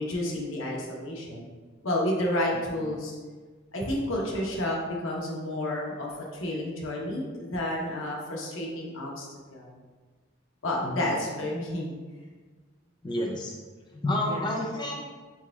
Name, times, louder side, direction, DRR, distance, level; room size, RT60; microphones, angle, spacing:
voice 1, 0.0-1.5 1.8-3.2 3.7-9.8 10.6-12.0 14.3-14.5, left 1 dB, 80° left, -2 dB, 0.9 m, -31 dB
voice 2, 10.8-11.2 13.0-13.5 13.9-15.0, left 1 dB, 25° left, 0 dB, 0.3 m, -30 dB
4.6 x 3.6 x 2.3 m, 1.4 s
head